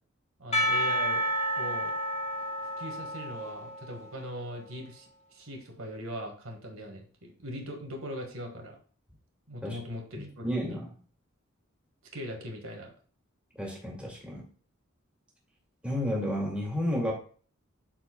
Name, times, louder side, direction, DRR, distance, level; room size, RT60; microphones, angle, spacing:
voice 1, 0.4-1.3 1.6-2.0 2.6-8.8 9.5-10.8 12.1-12.9, equal, 85° right, 2 dB, 1.7 m, -40 dB
Percussion, 0.5-4.4, equal, 30° left, 1.1 m, -30 dB
voice 2, 10.2-10.8 13.5-14.5 15.8-17.1, equal, 5° right, -3 dB, 2.3 m, -31 dB
12.0 x 4.5 x 2.3 m, 0.42 s
head